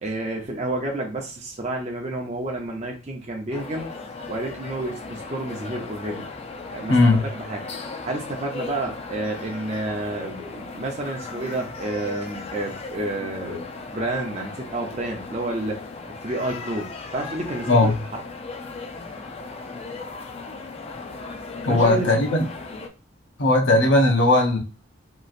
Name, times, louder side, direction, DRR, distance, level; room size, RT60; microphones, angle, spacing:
voice 1, 0.0-3.9 4.3-6.3 6.7-7.6 8.0-13.7 13.9-15.8 16.2-17.9 21.7-22.1, right 2 dB, 35° right, 0 dB, 0.6 m, -30 dB
sound 1, 3.5-22.9, left 3 dB, 30° left, 0.4 m, -37 dB
voice 2, 6.9-7.2 17.7-18.0 21.6-22.4 23.4-24.6, left 2 dB, 75° left, 1 dB, 0.8 m, -18 dB
2.9 x 2.4 x 2.4 m, 0.34 s
head